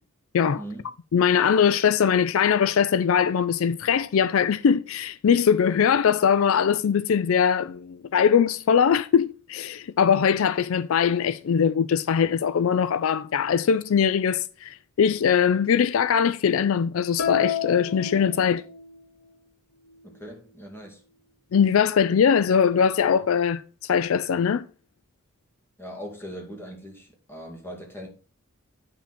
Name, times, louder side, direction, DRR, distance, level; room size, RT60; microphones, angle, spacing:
voice 1, 1.1-18.6 21.5-24.7, left 7 dB, 65° left, 0.4 m, -21 dB
sound 1, 17.2-19.0, left 8 dB, 85° left, 0.9 m, -29 dB
voice 2, 20.0-21.0 25.8-28.1, equal, 10° left, 2.3 m, -40 dB
9.1 x 5.9 x 4.2 m
head